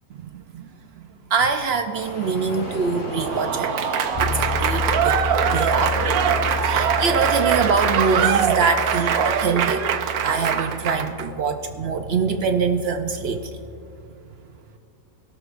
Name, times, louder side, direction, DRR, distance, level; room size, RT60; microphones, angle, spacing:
voice 1, 0.1-0.7 0.9-1.0 1.3-3.9 4.2-5.2 5.5-6.0 6.6-9.9 10.2-13.6, right 5 dB, 65° right, 7 dB, 0.6 m, -24 dB
sound 1, 1.9-8.2, equal, 65° left, 2.8 m, -34 dB
Applause / Crowd, 3.1-11.3, right 8 dB, 85° right, 1.2 m, -23 dB
Bass guitar, 4.1-13.9, left 5 dB, 30° left, 1.7 m, -32 dB
21.0 x 12.5 x 2.5 m, 2.6 s
omnidirectional pair, 1.5 m